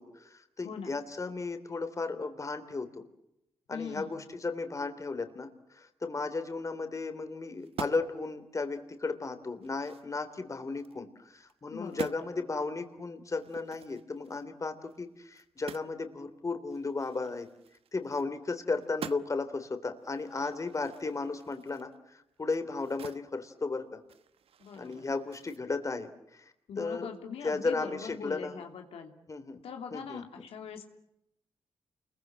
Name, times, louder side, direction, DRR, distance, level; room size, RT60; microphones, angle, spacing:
voice 1, 0.0-3.0 3.7-17.5 17.9-23.9 24.8-26.5 26.8-27.1 27.4-28.6 29.3-29.6 29.9-30.4, left 3 dB, 35° left, 8 dB, 3.4 m, -35 dB
voice 2, 0.6-1.0 3.7-4.3 11.7-12.2 24.6-25.1 26.7-29.1 29.6-30.9, left 6 dB, 90° left, 4 dB, 3.0 m, -42 dB
sound 1, 7.6-8.2 8.6-8.8 9.2-11.0 11.4-11.6 11.8-12.2 13.4-16.0 16.3-16.4 16.7-18.5 18.8-19.5 20.0-23.3 23.6-25.6, right 8 dB, 75° right, 1.1 m, -47 dB
29.5 x 22.5 x 7.7 m, 0.82 s
cardioid pair, 85°, 10 cm